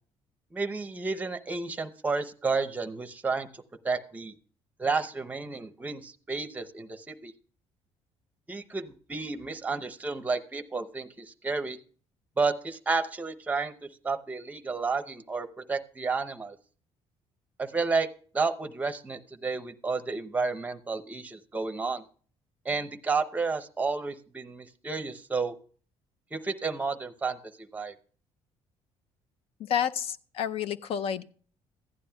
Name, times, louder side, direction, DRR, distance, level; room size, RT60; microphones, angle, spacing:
voice 1, 0.5-4.3 4.8-7.3 8.5-11.8 12.4-13.7 14.0-16.6 17.6-18.1 18.3-22.0 22.6-25.5 26.3-27.4 27.7-27.9, right 4 dB, 15° right, 8 dB, 0.7 m, -31 dB
voice 2, 29.6-31.2, left 9 dB, 60° left, 13 dB, 0.5 m, -30 dB
15.0 x 10.5 x 2.3 m, 0.43 s
cardioid pair, 140°, 11 cm